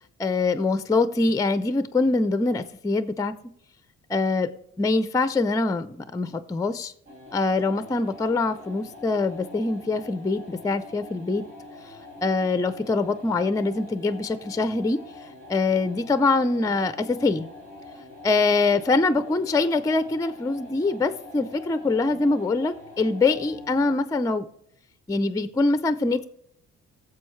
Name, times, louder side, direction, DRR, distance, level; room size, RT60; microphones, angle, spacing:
voice 1, 0.2-3.3 4.1-4.5 4.8-6.9 7.3-11.4 12.2-17.5 18.2-24.5 25.1-26.3, left 3 dB, 10° left, 12 dB, 0.4 m, -24 dB
sound 1, 7.1-24.1, left 2 dB, 80° right, 3.5 m, -44 dB
17.0 x 7.1 x 3.2 m, 0.71 s
cardioid pair, 90°, 30 cm